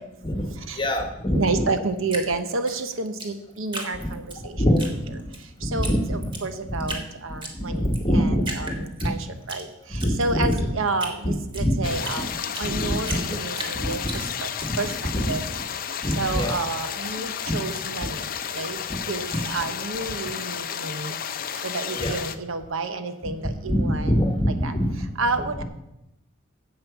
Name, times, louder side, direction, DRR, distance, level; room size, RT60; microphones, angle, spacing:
voice 1, 0.7-1.6 3.9-4.2 4.5-4.8 5.6-6.3 6.6-7.0 7.5-9.1 9.9-10.7 11.2-11.9 12.2-12.3 12.7-13.2 13.7-14.2 14.6-14.8 15.1-15.3 16.0-16.6 17.5-17.6 18.9-19.0 19.3-19.4 21.9-22.1 23.6-25.1 25.6-25.7, equal, 25° left, 4 dB, 1.3 m, -25 dB
voice 2, 1.3-4.6 5.4-7.8 8.1-12.3 12.6-14.5 14.8-15.0 15.3-15.4 16.2-18.8 19.1-24.2 24.6-24.7 25.2-25.6, right 3 dB, 70° right, 9 dB, 1.0 m, -30 dB
Drip, 2.1-4.4 4.8-5.4 5.8-5.9 6.2-7.0 7.4-8.0 8.4-9.6 9.9-12.7 13.0-14.7, right 2 dB, 25° right, 1.6 m, -35 dB
sound 1, 11.8-22.4, left 8 dB, 45° left, 0.6 m, -32 dB
8.9 x 7.9 x 7.0 m, 0.87 s
head